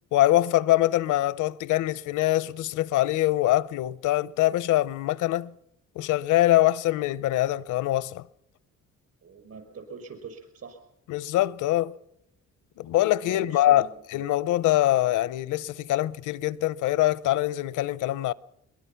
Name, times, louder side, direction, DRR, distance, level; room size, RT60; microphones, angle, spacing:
voice 1, 0.1-5.5 6.0-8.2 11.1-12.0 12.8-13.9 14.1-18.3, left 15 dB, 80° left, 0.7 m, -23 dB
voice 2, 9.2-10.8 13.2-14.0, right 4 dB, 55° right, 5.8 m, -43 dB
22.0 x 21.5 x 5.8 m
cardioid pair, 90°, 30 cm